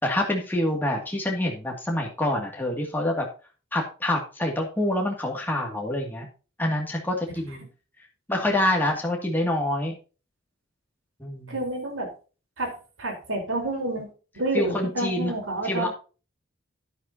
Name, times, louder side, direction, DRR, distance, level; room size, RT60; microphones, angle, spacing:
voice 1, 0.0-3.3 3.7-6.3 6.6-7.6 8.3-10.0 11.2-11.5 14.5-15.3 15.6-15.9, left 1 dB, 10° left, -1 dB, 2.2 m, -26 dB
voice 2, 11.5-12.1 12.6-12.7 13.0-14.1 14.3-15.9, right 2 dB, 90° right, 3 dB, 3.8 m, -29 dB
11.0 x 10.0 x 2.7 m, 0.34 s
head